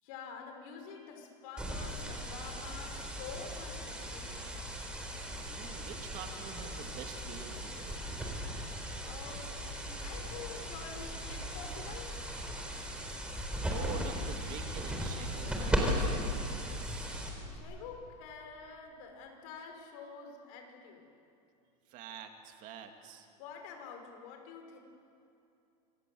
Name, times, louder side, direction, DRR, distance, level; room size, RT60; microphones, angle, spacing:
voice 1, 0.0-4.6 9.0-12.2 17.5-21.0 23.4-24.8, left 5 dB, 55° left, 4 dB, 5.6 m, -48 dB
sound 1, 1.6-17.6, equal, 5° right, 3.9 m, -37 dB
voice 2, 5.5-8.4 13.7-17.2 21.9-23.3, right 8 dB, 40° right, 5 dB, 2.2 m, -47 dB
27.5 x 25.0 x 7.8 m, 2.8 s
supercardioid pair, 160°, 21 cm